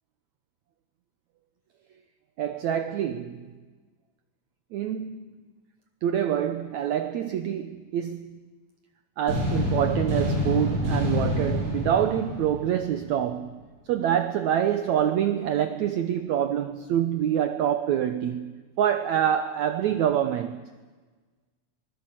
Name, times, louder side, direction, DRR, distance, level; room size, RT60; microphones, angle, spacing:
voice 1, 2.4-3.5 4.7-5.3 6.0-8.4 9.2-13.6 13.9-20.6, right 10 dB, 80° right, 1.6 m, -26 dB
sound 1, 9.3-13.2, left 1 dB, 25° right, 7.6 m, -27 dB
26.0 x 20.5 x 7.6 m
omnidirectional pair, 4.3 m